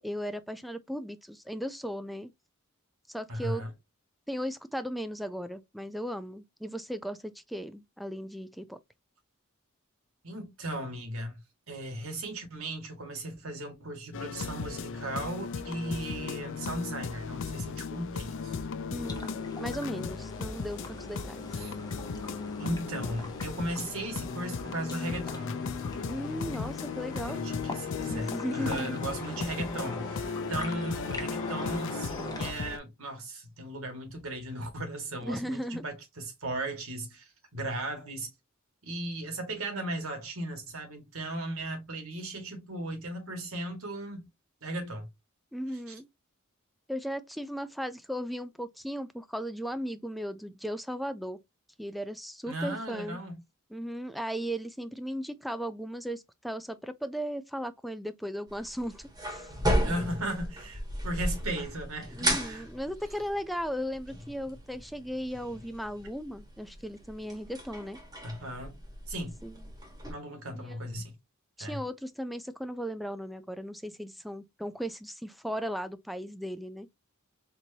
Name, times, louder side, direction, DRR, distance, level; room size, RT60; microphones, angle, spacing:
voice 1, 0.0-2.3 3.1-3.6 4.3-8.8 18.9-21.6 26.1-27.4 28.1-29.0 35.2-35.9 45.5-46.1 46.9-51.4 51.8-53.2 53.7-59.5 62.2-68.0 69.4-69.5 70.5-70.8 71.6-76.9, equal, ahead, 0.4 m, -36 dB
voice 2, 3.3-3.7 10.2-11.4 11.7-18.6 21.5-21.7 22.6-25.6 27.2-38.3 38.8-44.3 44.6-45.1 45.9-46.0 52.4-53.4 59.8-62.7 68.2-68.7 69.1-69.4 70.1-71.2 71.6-71.8, right 1 dB, 70° right, 1.7 m, -36 dB
sound 1, 14.1-32.8, left 5 dB, 60° left, 0.5 m, -36 dB
sound 2, 19.0-32.5, left 2 dB, 20° left, 0.9 m, -43 dB
sound 3, 58.5-70.1, equal, 20° right, 1.3 m, -35 dB
4.5 x 2.7 x 2.7 m
head